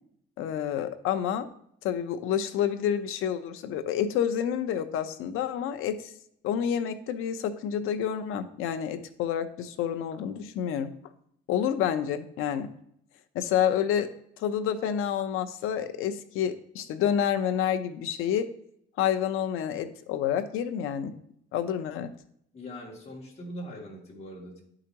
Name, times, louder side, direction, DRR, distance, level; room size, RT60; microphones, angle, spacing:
voice 1, 0.4-1.5 1.8-6.1 6.4-10.9 11.5-12.7 13.3-14.1 14.4-18.5 19.0-21.1 21.5-22.1, left 9 dB, 85° left, 10 dB, 0.7 m, -28 dB
voice 2, 22.5-24.6, equal, 30° left, -3 dB, 2.5 m, -41 dB
11.0 x 4.9 x 2.9 m, 0.71 s
cardioid pair, 115°, 21 cm